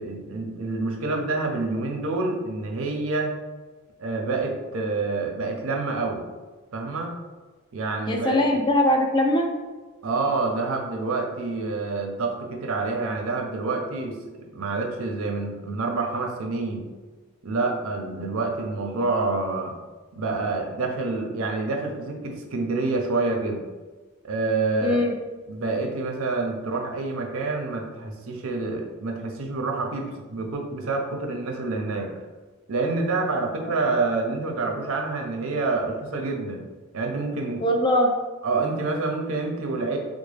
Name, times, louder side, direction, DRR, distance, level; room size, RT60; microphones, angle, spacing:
voice 1, 0.0-3.3 4.0-6.2 6.7-7.2 7.7-8.6 10.0-14.2 14.5-16.9 17.4-19.7 20.1-23.6 24.2-25.0 25.5-32.1 32.7-36.6 36.9-37.6 38.4-40.0, right 3 dB, 70° right, 2 dB, 0.5 m, -27 dB
voice 2, 8.1-9.5 24.8-25.1 33.7-33.8 37.6-38.1, left 1 dB, 20° left, 2 dB, 0.3 m, -21 dB
3.8 x 2.0 x 3.3 m, 1.3 s
head